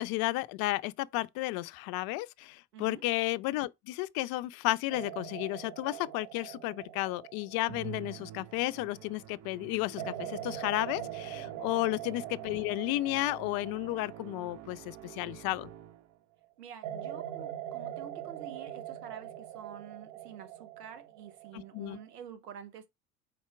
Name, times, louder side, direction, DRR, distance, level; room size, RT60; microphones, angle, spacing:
voice 1, 0.0-15.7 21.5-22.0, left 18 dB, 50° left, 0.6 m, -33 dB
voice 2, 2.7-3.0 11.6-11.9 16.6-22.9, right 8 dB, 85° right, 1.0 m, -48 dB
sound 1, 4.9-9.1 10.0-16.0 16.8-22.2, right 11 dB, 65° right, 1.6 m, -43 dB
Musical instrument, 7.7-16.2, right 11 dB, 35° right, 0.6 m, -48 dB
4.4 x 4.3 x 5.6 m
hypercardioid pair, 65°, 46 cm